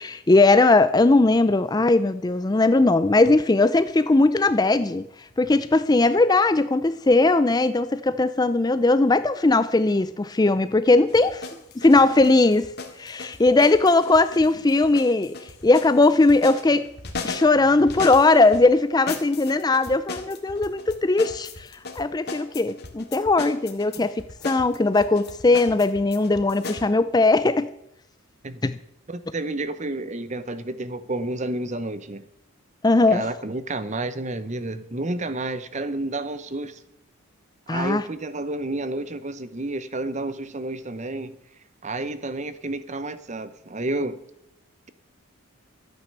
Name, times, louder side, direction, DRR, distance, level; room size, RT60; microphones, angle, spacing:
voice 1, 0.0-5.0 5.4-11.5 11.8-12.7 13.0-16.9 17.2-21.7 22.0-27.7 28.6-28.7 32.8-33.3 37.7-38.0, left 2 dB, 20° left, 0.4 m, -19 dB
sound 1, 11.1-18.6 19.1-26.9, left 4 dB, 50° left, 1.9 m, -37 dB
voice 2, 29.1-32.2 33.1-36.8 37.7-41.4 41.8-44.2, right 2 dB, 30° right, 0.8 m, -30 dB
13.5 x 9.1 x 6.7 m
head